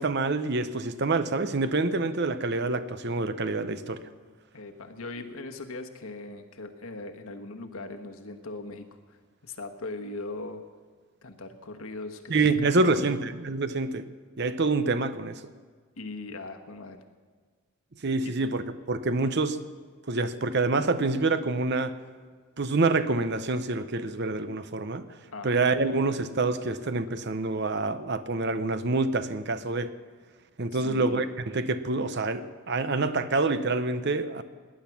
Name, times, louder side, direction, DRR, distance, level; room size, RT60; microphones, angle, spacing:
voice 1, 0.0-4.0 12.3-14.0 14.4-15.4 18.0-19.6 20.1-21.9 22.6-25.0 25.4-29.9 30.6-34.4, right 3 dB, 50° right, 12 dB, 0.7 m, -27 dB
voice 2, 4.5-9.2 9.4-10.6 11.2-13.1 16.0-17.0 18.2-18.4 25.3-25.6 30.7-31.3, left 2 dB, 70° left, 5 dB, 1.3 m, -39 dB
18.5 x 10.5 x 5.9 m, 1.5 s
head